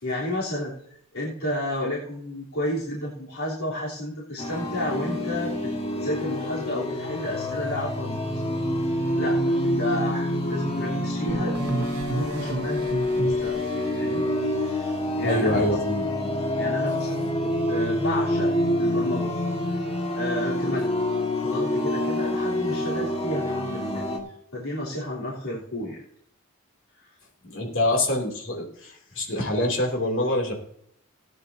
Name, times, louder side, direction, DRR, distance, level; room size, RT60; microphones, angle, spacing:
voice 1, 0.0-0.7 1.1-5.7 6.0-8.4 9.1-13.6 14.0-14.3 14.6-15.8 16.6-18.5 18.8-19.3 19.6-19.7 20.1-20.9 21.4-24.1 24.5-26.0 27.0-27.1, left 1 dB, 90° left, -7 dB, 3.6 m, -31 dB
sound 1, 4.4-24.2, left 1 dB, 30° left, 1.7 m, -27 dB
sound 2, 11.3-14.0, right 2 dB, 75° right, 0.9 m, -32 dB
voice 2, 15.2-16.3 27.4-30.5, left 1 dB, 60° left, 1 dB, 2.9 m, -25 dB
17.5 x 10.0 x 2.8 m, 0.67 s
head